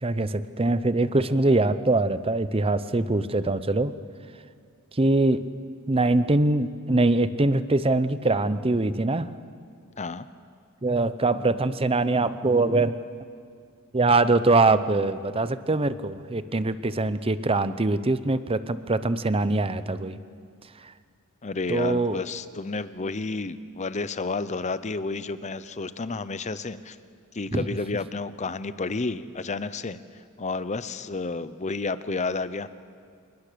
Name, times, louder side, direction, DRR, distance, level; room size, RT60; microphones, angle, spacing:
voice 1, 0.0-3.9 5.0-5.4 5.9-9.3 10.8-13.0 13.9-20.2 21.7-22.2 27.5-27.7, right 2 dB, 25° right, 13 dB, 0.7 m, -23 dB
voice 2, 21.4-27.0 27.3-30.0 30.4-32.7, left 3 dB, 30° left, 14 dB, 0.7 m, -31 dB
27.5 x 20.0 x 6.9 m, 2.2 s
head